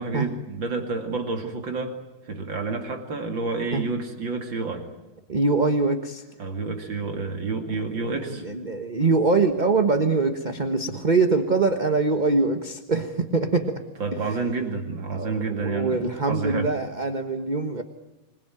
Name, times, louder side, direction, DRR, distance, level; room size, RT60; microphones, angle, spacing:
voice 1, 0.0-1.9 2.3-4.9 6.4-8.4 10.9-11.0 14.0-16.7, right 3 dB, 65° right, 4 dB, 3.1 m, -29 dB
voice 2, 5.3-6.2 8.4-13.8 14.3-14.4 15.1-17.8, right 3 dB, 25° right, 7 dB, 1.3 m, -23 dB
26.5 x 21.5 x 9.2 m, 1.0 s
omnidirectional pair, 2.2 m